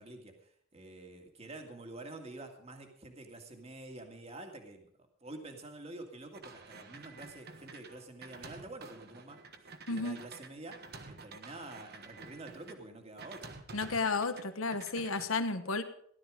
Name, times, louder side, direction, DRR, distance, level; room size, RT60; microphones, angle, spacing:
voice 1, 0.0-4.9 5.2-13.6, right 2 dB, 30° right, 4 dB, 2.1 m, -48 dB
sound 1, 6.3-12.7 13.2-14.4 14.7-15.3, right 4 dB, 50° right, 1.4 m, -50 dB
voice 2, 13.7-15.8, left 3 dB, 85° left, 9 dB, 1.2 m, -32 dB
16.5 x 12.0 x 5.1 m, 0.64 s
head